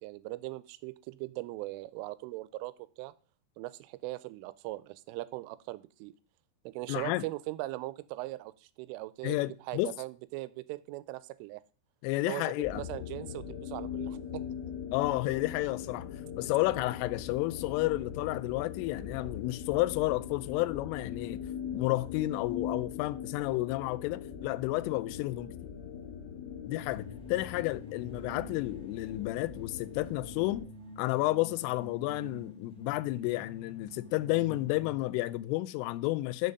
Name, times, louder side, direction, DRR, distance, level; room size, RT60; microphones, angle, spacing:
voice 1, 0.0-3.1 3.6-6.1 6.7-9.4 9.7-11.6 12.3-14.4 16.2-16.3, right 19 dB, 85° right, 3.1 m, -40 dB
voice 2, 6.9-7.3 9.2-9.9 12.0-12.9 14.9-16.1 16.4-21.4 21.7-25.5 26.6-30.7 31.0-36.5, left 19 dB, 90° left, 3.1 m, -31 dB
sound 1, 12.6-30.6, left 8 dB, 60° left, 3.6 m, -41 dB
sound 2, 26.7-35.3, left 2 dB, ahead, 1.2 m, -49 dB
6.8 x 6.4 x 5.3 m
omnidirectional pair, 5.6 m